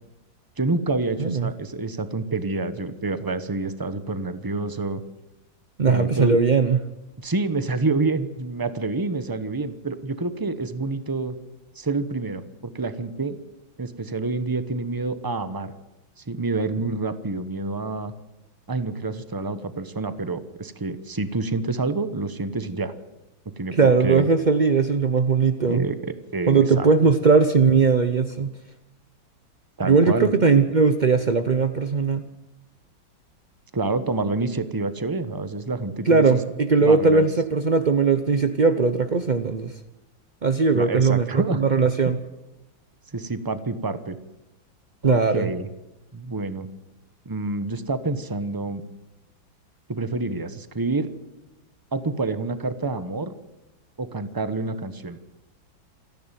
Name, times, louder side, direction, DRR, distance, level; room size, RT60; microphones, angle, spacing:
voice 1, 0.6-5.0 5.9-6.4 7.2-11.3 11.8-13.4 13.8-15.7 16.3-18.1 18.7-22.9 23.6-24.3 25.7-26.9 29.8-30.3 33.7-36.4 36.8-37.2 40.7-41.6 43.1-44.2 45.0-45.7 46.1-46.7 47.3-48.8 49.9-51.1 51.9-53.3 54.0-55.2, right 3 dB, 20° right, 11 dB, 0.6 m, -27 dB
voice 2, 1.2-1.5 5.8-6.8 23.7-25.8 26.5-28.5 29.8-32.2 36.1-39.7 40.4-42.2 45.0-45.5, right 4 dB, 60° right, 9 dB, 0.4 m, -19 dB
27.5 x 10.5 x 9.1 m, 1.0 s
omnidirectional pair, 2.1 m